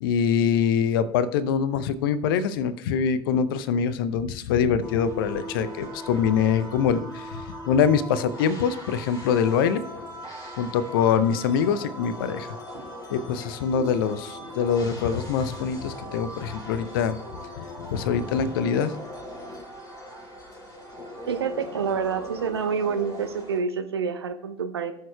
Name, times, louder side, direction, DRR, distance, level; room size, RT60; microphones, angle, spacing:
voice 1, 0.0-9.8 10.6-12.6 13.1-17.2 17.6-17.7 17.9-18.9, left 7 dB, 60° left, 14 dB, 0.6 m, -24 dB
sound 1, 4.8-23.6, left 1 dB, 25° left, 4.1 m, -39 dB
Walk footsteps, 10.4-10.7 11.0-11.3 11.6-16.2, right 3 dB, 50° right, 2.9 m, -50 dB
voice 2, 21.3-24.9, right 6 dB, 80° right, 8 dB, 0.7 m, -27 dB
19.0 x 6.5 x 2.3 m, 0.76 s
figure-of-eight pair, 75°, 13 cm